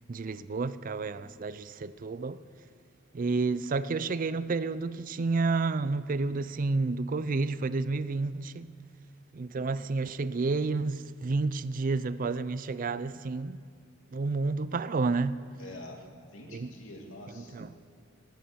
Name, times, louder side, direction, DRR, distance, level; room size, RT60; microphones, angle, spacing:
voice 1, 0.1-2.4 3.1-8.7 9.3-13.6 14.1-15.4 16.5-16.7 17.4-17.7, right 3 dB, 40° right, 0.4 m, -30 dB
voice 2, 15.6-17.7, left 1 dB, 80° left, 2.7 m, -47 dB
17.5 x 11.5 x 6.9 m
head